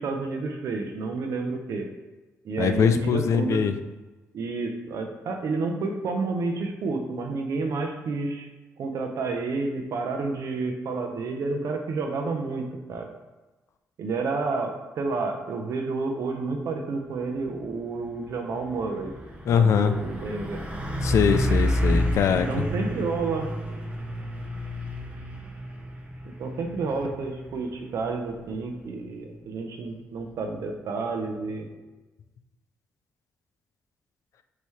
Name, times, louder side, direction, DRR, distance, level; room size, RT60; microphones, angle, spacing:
voice 1, 0.0-1.9 2.4-3.6 4.3-8.5 8.8-13.1 14.0-19.1 19.5-20.6 21.9-22.0 22.3-23.5 26.2-31.7, right 3 dB, 70° right, 4 dB, 0.7 m, -30 dB
voice 2, 2.6-3.7 19.5-20.0 21.0-22.5, left 7 dB, 65° left, 8 dB, 0.4 m, -22 dB
Truck, 17.5-17.7 18.1-30.7, equal, 20° right, 0.8 m, -31 dB
5.5 x 3.0 x 3.1 m, 1.1 s
cardioid pair, 100°, 5 cm